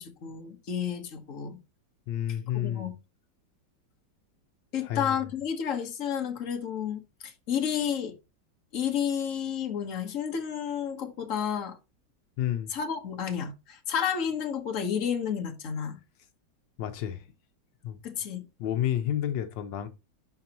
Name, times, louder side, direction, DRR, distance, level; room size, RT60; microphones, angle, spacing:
voice 1, 0.0-1.6 2.3-2.9 4.7-8.1 8.7-11.8 12.7-16.0 18.0-18.4, left 8 dB, 45° left, 1.5 m, -31 dB
voice 2, 2.1-2.9 4.8-5.2 12.4-12.7 16.8-17.3 17.8-18.0 18.6-19.9, left 11 dB, 80° left, 1.5 m, -30 dB
11.0 x 4.7 x 2.9 m
omnidirectional pair, 2.0 m